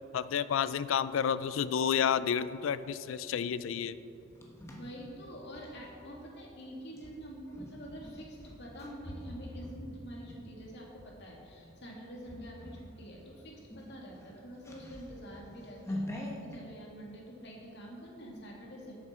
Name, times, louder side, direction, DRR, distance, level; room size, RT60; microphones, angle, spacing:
voice 1, 0.1-3.9, left 8 dB, 75° left, 15 dB, 0.3 m, -30 dB
sound 1, 3.9-5.9 6.9-11.1 11.6-11.9 12.2-12.9 13.2-13.3 13.6-16.6, left 1 dB, 15° left, 1.1 m, -44 dB
voice 2, 4.7-19.0, equal, 55° left, -2 dB, 2.1 m, -47 dB
11.0 x 8.5 x 4.4 m, 2.7 s
head